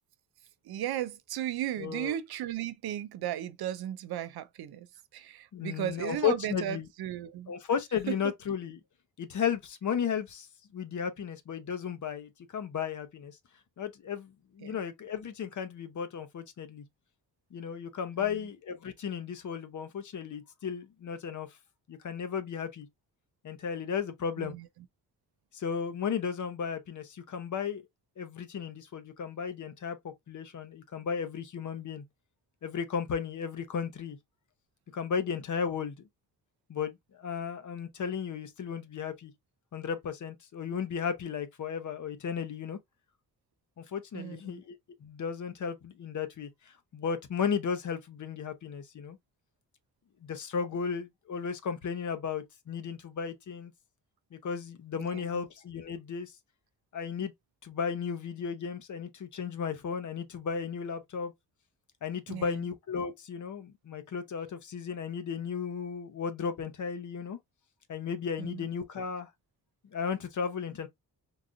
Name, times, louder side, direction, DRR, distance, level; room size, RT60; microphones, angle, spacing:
voice 1, 0.6-4.9 5.1-7.5 14.6-14.8 18.2-18.4 24.4-24.7 44.1-44.6 55.1-55.3 62.3-62.6 68.4-68.7, right 12 dB, 70° right, 0.5 m, -36 dB
voice 2, 1.8-2.1 5.5-6.9 7.5-8.8 9.2-10.5 10.7-13.4 13.8-16.8 17.5-21.5 21.9-22.9 23.4-24.5 25.5-27.8 28.2-32.0 32.6-34.2 34.9-36.0 36.7-39.3 39.7-42.8 43.9-44.8 45.0-46.5 46.9-49.2 50.2-53.7 54.3-56.3 56.9-57.3 57.6-61.3 62.0-67.4 67.9-69.3 69.9-70.9, left 7 dB, 50° left, 0.8 m, -34 dB
3.8 x 2.7 x 2.4 m
cardioid pair, 90°, 38 cm